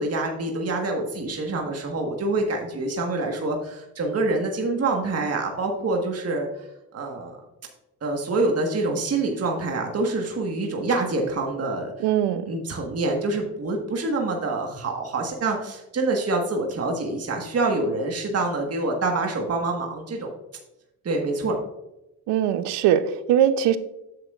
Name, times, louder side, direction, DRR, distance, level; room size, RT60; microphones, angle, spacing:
voice 1, 0.0-6.7 6.9-7.4 8.0-11.9 12.5-20.3 21.0-21.5, right 2 dB, 35° right, 2 dB, 1.5 m, -26 dB
voice 2, 12.0-12.5 22.3-23.8, right 10 dB, 70° right, 12 dB, 0.8 m, -21 dB
9.3 x 7.4 x 2.4 m, 0.91 s
supercardioid pair, 70°, 42 cm